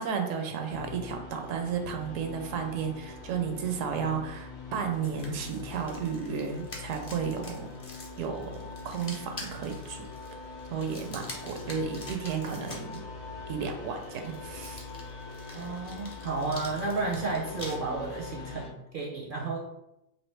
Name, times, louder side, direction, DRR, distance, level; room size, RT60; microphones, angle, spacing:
voice 1, 0.0-7.7 8.2-8.6 8.8-10.1 10.7-13.0 13.5-14.8, right 6 dB, 75° right, 4 dB, 0.9 m, -33 dB
sound 1, 0.7-18.7, left 4 dB, 65° left, 0.8 m, -43 dB
sound 2, 4.9-13.0 14.0-17.7, left 2 dB, 35° left, 0.6 m, -46 dB
voice 2, 15.5-19.6, right 3 dB, 55° right, -3 dB, 0.6 m, -32 dB
3.0 x 2.8 x 3.2 m, 0.87 s
omnidirectional pair, 1.4 m